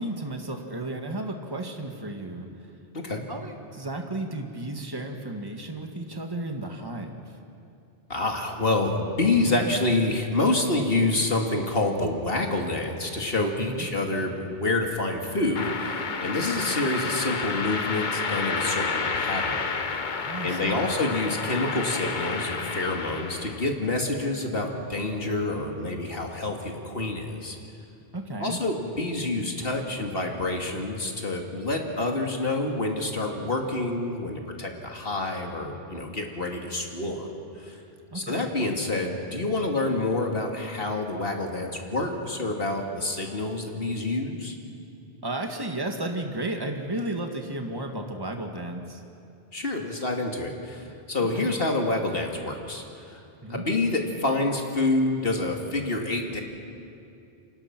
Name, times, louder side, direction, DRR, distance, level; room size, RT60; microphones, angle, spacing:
voice 1, 0.0-2.5 3.3-7.1 13.7-13.9 20.2-20.9 28.1-28.6 38.1-38.5 45.2-49.0 51.3-51.5 53.4-53.6, right 1 dB, 20° right, 3 dB, 1.9 m, -33 dB
voice 2, 8.1-19.7 20.4-27.6 28.4-37.3 37.6-37.8 38.1-44.6 49.5-53.2 53.5-56.4, left 2 dB, 65° left, 2 dB, 2.7 m, -27 dB
sound 1, 15.6-23.7, left 4 dB, 50° left, 1.2 m, -30 dB
29.5 x 25.5 x 6.1 m, 2.6 s
omnidirectional pair, 1.0 m